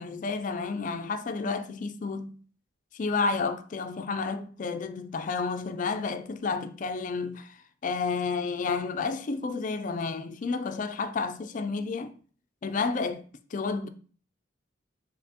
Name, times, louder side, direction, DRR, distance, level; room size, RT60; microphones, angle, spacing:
voice 1, 0.0-2.3 2.9-12.1 12.6-13.2 13.5-13.9, left 4 dB, 40° left, 0.3 m, -31 dB
4.2 x 3.5 x 2.8 m
head